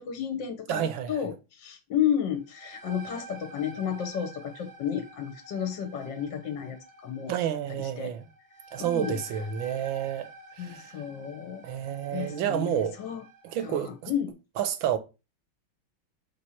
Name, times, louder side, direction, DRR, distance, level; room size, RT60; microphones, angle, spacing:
voice 1, 0.0-7.3 7.8-8.1 8.8-9.2 10.6-11.6 12.1-13.2 13.6-14.4, left 9 dB, 65° left, 1.5 m, -32 dB
voice 2, 0.7-1.2 7.3-8.3 8.7-10.3 10.6-10.9 11.6-13.0 13.4-14.1 14.6-15.0, right 10 dB, 75° right, 1.5 m, -30 dB
sound 1, 2.3-13.8, right 2 dB, 35° right, 0.8 m, -48 dB
6.4 x 3.6 x 5.7 m
omnidirectional pair, 2.3 m